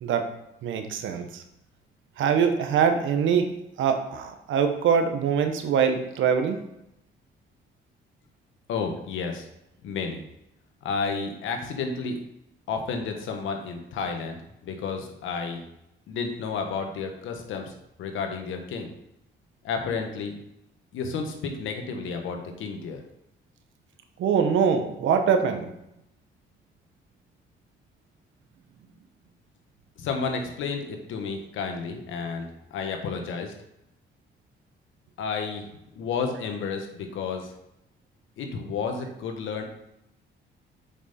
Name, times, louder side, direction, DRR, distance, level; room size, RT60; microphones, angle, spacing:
voice 1, 0.6-1.4 2.2-3.5 3.8-6.6 24.2-25.7, right 7 dB, 80° right, 7 dB, 1.1 m, -23 dB
voice 2, 8.7-9.5 9.8-10.2 10.8-12.2 12.7-14.4 14.6-15.6 16.1-17.7 18.0-18.9 19.6-20.3 20.9-23.0 30.0-33.5 35.2-35.6 35.9-37.5 38.4-39.6, left 5 dB, 80° left, 4 dB, 1.4 m, -31 dB
7.3 x 5.5 x 4.3 m, 0.84 s
cardioid pair, 90°, 20 cm